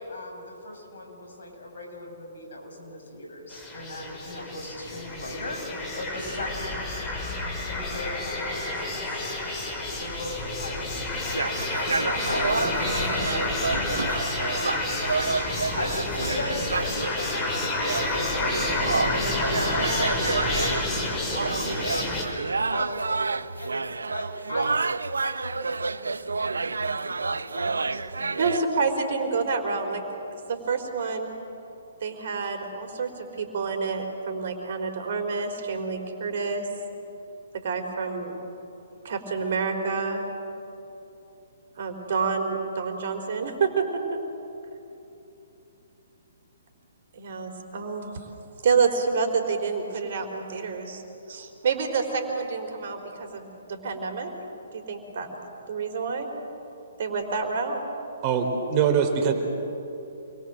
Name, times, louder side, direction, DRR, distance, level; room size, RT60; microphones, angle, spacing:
voice 1, 0.0-7.0 7.7-9.3 9.9-11.4 12.2-18.3 18.7-19.5 19.9-22.1 22.7-24.8 25.2-28.4, left 2 dB, 70° left, 2 dB, 6.7 m, -38 dB
sound 1, 3.5-22.2, left 2 dB, 25° left, 5.2 m, -29 dB
sound 2, 11.3-28.6, right 4 dB, 80° right, 0.7 m, -29 dB
voice 2, 28.4-30.0 30.5-31.3 32.0-36.6 37.5-38.4 39.0-40.2 41.8-43.9 47.2-48.2 48.6-51.0 51.3-54.3 54.7-55.3 55.7-56.3 57.0-57.8, right 5 dB, 55° right, 4 dB, 4.1 m, -28 dB
voice 3, 58.2-59.3, right 7 dB, 35° right, 4 dB, 3.9 m, -22 dB
28.5 x 22.5 x 7.7 m, 2.9 s
figure-of-eight pair, 130°, 0 cm